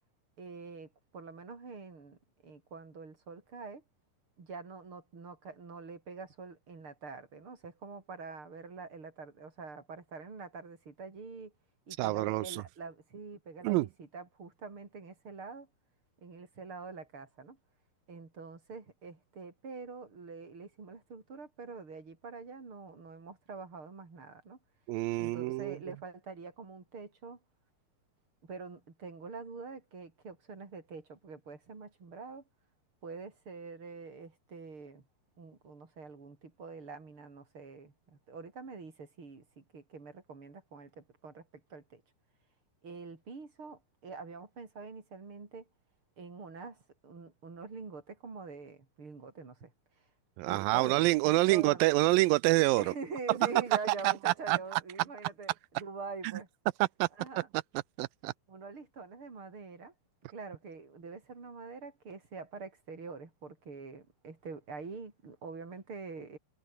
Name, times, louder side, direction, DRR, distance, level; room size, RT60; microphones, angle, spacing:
voice 1, 0.4-3.8 4.4-11.5 11.9-15.7 16.2-17.6 18.1-24.6 25.2-27.4 28.4-32.4 33.0-35.0 35.4-42.0 42.8-45.7 46.2-49.7 50.0-50.1 50.5-51.9 52.8-56.5 57.2-57.5 58.5-59.9 60.3-66.4, right 4 dB, 30° right, 5.2 m, -45 dB
voice 2, 12.0-12.6 13.6-13.9 24.9-25.8 50.4-52.8 54.0-54.8 57.0-57.1 58.0-58.3, right 20 dB, 85° right, 2.0 m, -27 dB
omnidirectional pair, 4.7 m